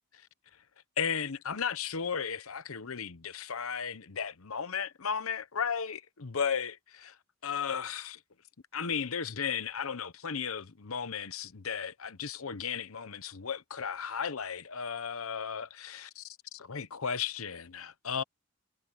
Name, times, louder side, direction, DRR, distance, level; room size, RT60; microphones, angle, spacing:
voice 1, 1.0-7.2 7.4-8.2 8.7-18.2, left 6 dB, 75° left, 1.0 m, -35 dB
head